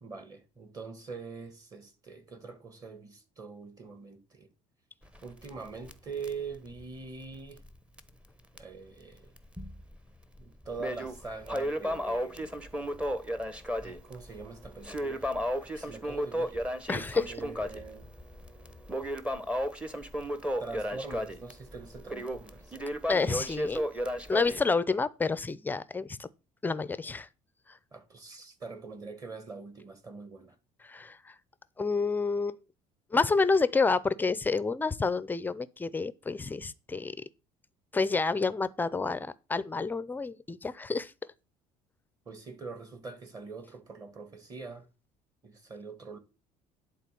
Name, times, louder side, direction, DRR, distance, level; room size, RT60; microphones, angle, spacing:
voice 1, 0.0-4.5 5.2-7.6 8.6-9.3 10.4-12.6 13.8-15.3 15.6-16.6 17.3-18.1 20.6-22.8 27.9-30.6 42.3-44.9 45.4-46.2, right 4 dB, 25° right, 2.0 m, -43 dB
Crackle, 5.0-7.7 8.0-8.1 8.6-8.7 9.4-10.0 10.3-24.6, equal, 10° right, 0.9 m, -34 dB
voice 2, 16.9-17.3 23.1-23.9 24.3-26.3 26.6-27.3 30.8-31.3 31.8-32.6 33.1-37.2 37.9-41.1, left 4 dB, 15° left, 0.5 m, -29 dB
11.0 x 4.0 x 6.9 m
cardioid pair, 140°, 14 cm